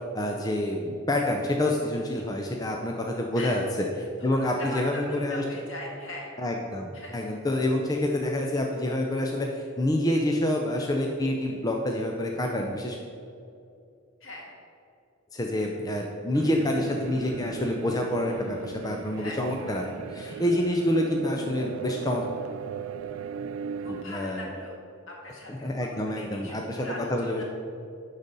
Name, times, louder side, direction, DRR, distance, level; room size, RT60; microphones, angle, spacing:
voice 1, 0.1-3.6 4.2-5.4 6.4-13.0 15.3-19.9 20.1-22.2 23.9-24.4 25.6-27.4, left 1 dB, 15° left, 1 dB, 0.5 m, -27 dB
voice 2, 3.3-3.7 4.2-6.3 6.9-7.3 14.2-14.5 19.2-19.4 19.6-19.9 20.3-20.4 23.8-24.8 25.1-27.4, left 1 dB, 65° left, -2 dB, 1.9 m, -40 dB
sound 1, 16.3-24.1, right 6 dB, 85° right, 0.3 m, -38 dB
11.5 x 4.0 x 5.3 m, 2.5 s
head